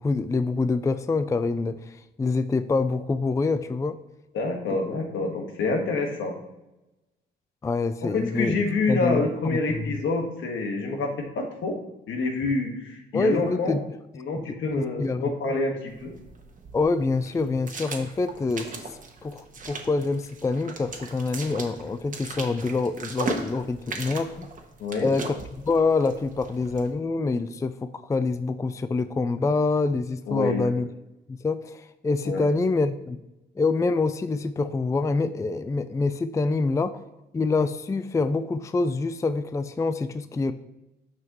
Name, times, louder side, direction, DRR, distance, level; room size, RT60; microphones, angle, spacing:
voice 1, 0.0-4.0 7.6-10.0 13.1-13.8 14.5-15.2 16.7-18.9 19.2-24.5 25.0-30.9 31.3-33.2 33.6-37.0 37.3-40.5, left 3 dB, 15° left, 11 dB, 0.4 m, -26 dB
voice 2, 4.3-6.4 8.0-11.8 12.1-13.8 14.2-16.1 24.8-25.1 30.3-30.7 32.2-32.5, left 3 dB, 75° left, 2 dB, 1.6 m, -27 dB
sound 1, 15.9-26.9, right 3 dB, 40° right, 1.4 m, -38 dB
9.1 x 5.8 x 3.1 m, 0.96 s
cardioid pair, 90°, 20 cm